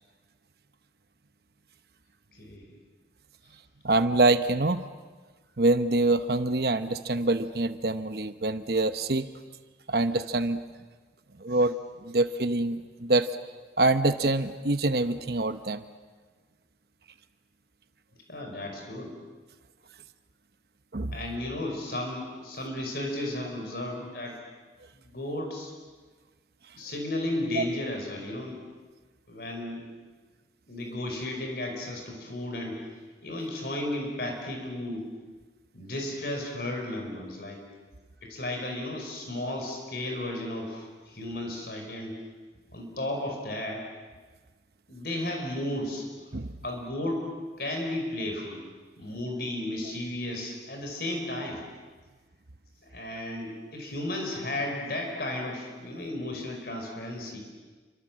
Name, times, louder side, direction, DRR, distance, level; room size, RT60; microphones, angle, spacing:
voice 1, 2.3-2.7 18.3-19.2 21.1-24.4 24.9-25.7 26.7-28.6 29.3-29.9 30.7-32.8 33.2-35.1 35.7-37.6 38.2-42.2 42.7-43.8 44.9-46.1 46.6-47.2 47.6-48.6 49.0-51.6 52.9-57.4, left 1 dB, 55° left, 2 dB, 5.3 m, -34 dB
voice 2, 3.8-4.8 5.6-9.3 9.9-10.6 11.4-11.8 12.0-13.3 13.8-15.8 20.9-21.2 27.6-27.7 46.3-46.6, right 2 dB, 60° right, 10 dB, 1.0 m, -25 dB
28.5 x 25.5 x 7.6 m, 1.4 s
head